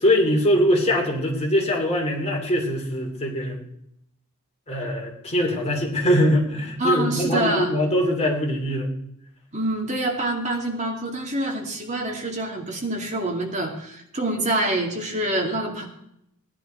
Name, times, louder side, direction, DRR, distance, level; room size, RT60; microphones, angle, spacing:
voice 1, 0.0-3.6 4.7-8.9, equal, 30° left, 0 dB, 2.7 m, -22 dB
voice 2, 6.8-7.7 9.5-15.8, right 1 dB, 35° right, 1 dB, 2.4 m, -26 dB
17.5 x 10.5 x 4.5 m, 0.75 s
head